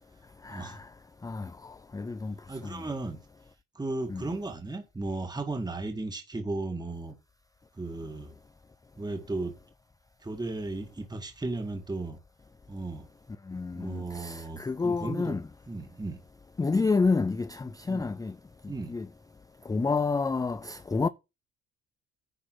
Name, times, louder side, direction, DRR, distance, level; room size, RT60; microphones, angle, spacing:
voice 1, 0.4-0.8 1.2-2.3 2.6-2.8 4.1-4.2 13.5-15.4 16.6-18.3 18.9-19.1 19.7-21.1, left 4 dB, 10° left, 0.4 m, -29 dB
voice 2, 2.5-3.2 3.7-7.1 7.7-8.4 9.0-9.6 10.2-12.2 12.7-13.1 13.7-15.4 15.7-16.2 17.9-18.1 18.7-19.0, right 2 dB, 15° right, 1.8 m, -35 dB
10.5 x 4.2 x 6.1 m
cardioid pair, 90°, 30 cm